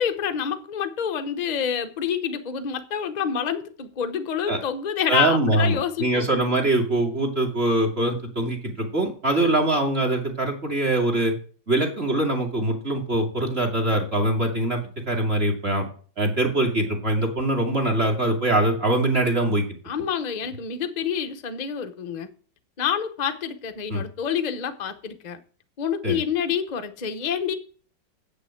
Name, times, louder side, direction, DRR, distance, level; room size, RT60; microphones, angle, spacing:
voice 1, 0.0-6.3 19.9-22.3 22.8-25.4 25.8-27.5, left 8 dB, 40° left, 0.6 m, -27 dB
voice 2, 5.1-11.3 11.7-15.9 16.2-19.6 23.9-24.0 26.0-26.2, right 1 dB, 30° right, 2.4 m, -23 dB
8.3 x 6.6 x 7.6 m
omnidirectional pair, 2.1 m